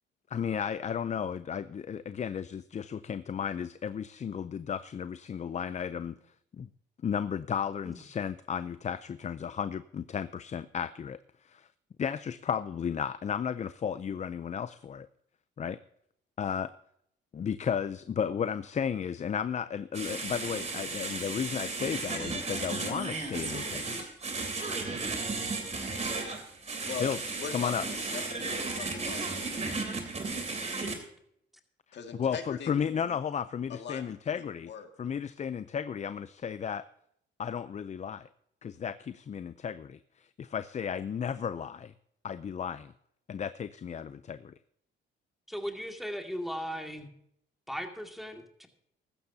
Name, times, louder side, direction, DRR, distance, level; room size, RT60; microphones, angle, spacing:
voice 1, 0.3-6.2 6.5-6.7 7.0-11.7 12.0-15.1 15.6-15.8 16.4-16.7 17.3-24.1 27.0-27.2 27.5-27.8 32.2-34.7 35.0-36.8 37.4-38.3 38.6-41.9 42.2-42.9 43.3-44.5, left 7 dB, 35° left, 14 dB, 0.5 m, -34 dB
sound 1, 19.9-30.9, right 3 dB, 35° right, 3.1 m, -34 dB
voice 2, 27.4-29.9 31.9-33.2 33.7-34.9, left 7 dB, 60° left, 5 dB, 2.0 m, -42 dB
voice 3, 45.5-47.1 47.7-48.7, equal, ahead, 3 dB, 2.1 m, -37 dB
15.5 x 13.0 x 2.7 m, 0.71 s
cardioid pair, 90°, 20 cm